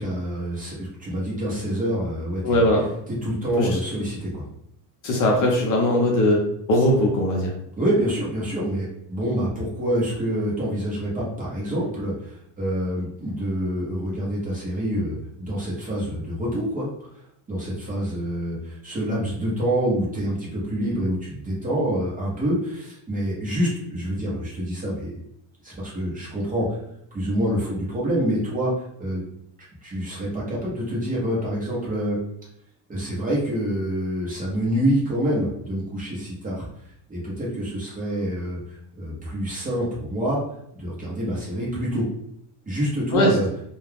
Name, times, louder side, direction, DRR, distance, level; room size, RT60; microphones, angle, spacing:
voice 1, 0.0-2.7 3.2-4.4 7.8-16.9 17.5-25.1 25.6-26.7 27.1-28.7 29.0-29.2 29.8-32.2 32.9-36.7 37.1-40.4 40.7-42.0 42.7-43.5, equal, 15° right, -6 dB, 0.9 m, -26 dB
voice 2, 2.4-2.9 3.6-3.7 5.0-7.5 43.1-43.3, left 1 dB, 45° left, -1 dB, 0.7 m, -20 dB
2.3 x 2.3 x 3.3 m, 0.72 s
cardioid pair, 140°, 47 cm